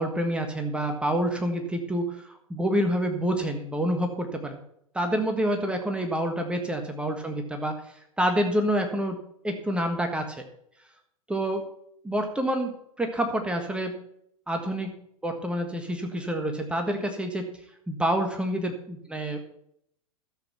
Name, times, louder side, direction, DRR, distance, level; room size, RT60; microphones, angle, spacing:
voice 1, 0.0-4.6 4.9-7.7 8.2-10.4 11.3-11.6 12.0-12.7 13.0-14.0 14.5-14.9 15.2-17.5 17.9-19.4, right 1 dB, 5° right, 4 dB, 1.5 m, -27 dB
13.0 x 7.8 x 5.9 m, 0.71 s
figure-of-eight pair, 100°, 18 cm